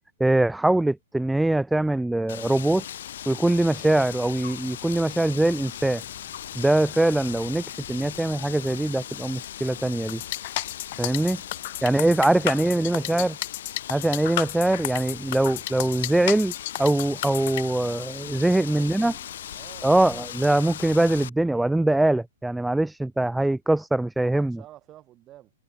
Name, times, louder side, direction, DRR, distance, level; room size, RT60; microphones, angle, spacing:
voice 1, 0.2-2.8 3.3-6.0 6.5-7.6 7.9-10.2 11.0-11.4 11.8-13.3 13.9-16.5 16.8-19.1 19.8-24.6, right 1 dB, 5° right, 0.3 m, -22 dB
Wind, 2.3-21.3, left 11 dB, 65° left, 4.3 m, -39 dB
sound 1, 3.3-4.4 4.8-4.9 5.8-8.3, left 9 dB, 15° left, 7.4 m, -58 dB
sound 2, 10.1-17.6, left 20 dB, 45° left, 1.3 m, -32 dB
voice 2, 11.2-13.3 18.2-20.0 24.2-25.5, right 14 dB, 25° right, 6.2 m, -50 dB
hypercardioid pair, 155°, 0 cm